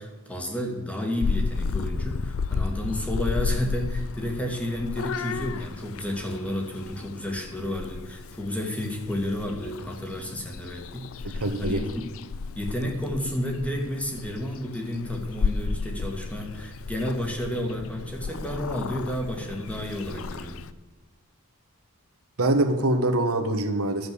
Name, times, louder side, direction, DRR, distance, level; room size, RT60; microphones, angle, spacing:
voice 1, 0.0-11.8 12.5-20.6, left 1 dB, 5° left, 2 dB, 1.8 m, -31 dB
Purr / Meow, 1.2-20.7, left 4 dB, 65° left, 0.5 m, -33 dB
voice 2, 11.2-11.8 22.4-24.1, right 1 dB, 80° right, 6 dB, 1.4 m, -24 dB
11.5 x 7.8 x 6.9 m, 1.2 s
head